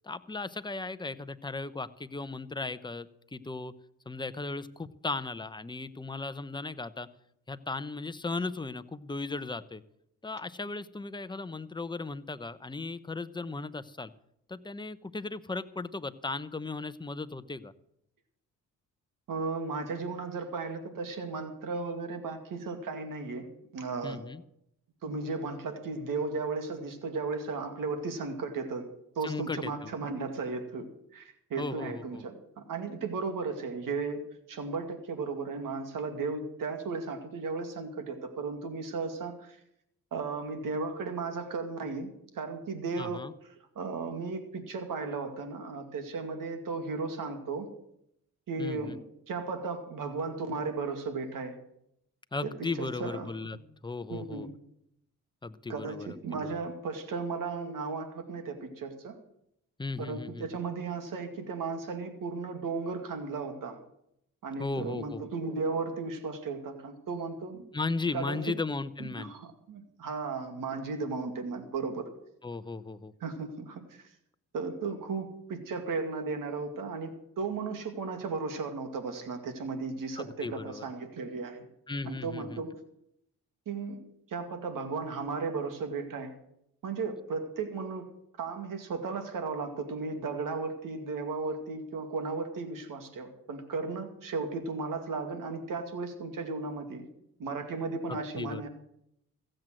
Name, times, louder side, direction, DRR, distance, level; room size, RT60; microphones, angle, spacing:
voice 1, 0.0-3.7 4.1-7.1 7.5-9.8 10.2-14.1 14.5-17.7 24.0-24.4 29.2-29.9 31.6-32.2 43.0-43.3 48.6-49.0 52.3-53.6 53.8-54.5 55.4-56.6 59.8-60.4 64.6-65.2 67.7-69.3 72.4-73.1 80.2-80.9 81.9-82.6 98.1-98.7, left 3 dB, 15° left, 13 dB, 0.8 m, -36 dB
voice 2, 19.3-23.5 23.7-24.2 25.0-28.9 29.2-34.2 34.5-39.6 40.1-43.3 43.8-47.7 48.5-51.6 52.4-52.5 52.8-53.6 54.1-54.6 55.7-59.2 60.0-63.8 64.4-67.7 68.1-68.6 69.0-72.0 73.2-74.1 74.5-81.7 82.0-82.8 83.7-84.0 84.3-86.3 86.8-88.1 88.4-97.1 97.4-98.7, right 4 dB, 70° right, 7 dB, 2.3 m, -35 dB
15.5 x 7.7 x 7.7 m, 0.76 s
cardioid pair, 65°, 34 cm